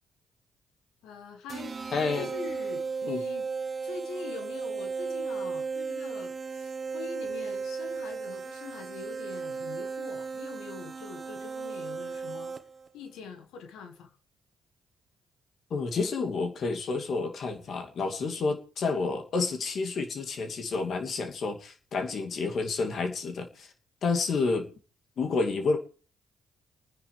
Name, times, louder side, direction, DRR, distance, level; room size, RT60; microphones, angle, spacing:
voice 1, 1.0-1.8 2.1-3.5 3.8-12.5 12.9-14.1, left 5 dB, 80° left, 7 dB, 1.9 m, -44 dB
sound 1, 1.5-12.9, right 5 dB, 40° right, 1.4 m, -35 dB
voice 2, 1.9-2.3 3.1-3.2 15.7-23.7 24.0-24.7 25.2-25.8, left 4 dB, 60° left, 4 dB, 2.6 m, -29 dB
29.5 x 10.0 x 3.4 m, 0.36 s
supercardioid pair, 55°, 0 cm